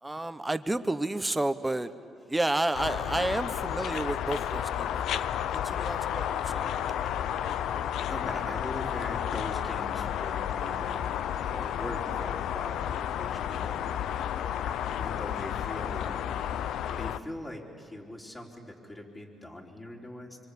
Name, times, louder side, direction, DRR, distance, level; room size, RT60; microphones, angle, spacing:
voice 1, 0.0-1.9 2.3-5.2 5.5-6.7, right 2 dB, 10° right, 11 dB, 1.1 m, -31 dB
sound 1, 2.7-17.2, left 10 dB, 80° left, 0.6 m, -32 dB
voice 2, 8.1-11.2 11.5-14.3 15.0-16.2 16.8-20.4, left 1 dB, 20° left, 0 dB, 4.0 m, -41 dB
26.0 x 24.0 x 8.5 m, 2.5 s
cardioid pair, 90°, 0 cm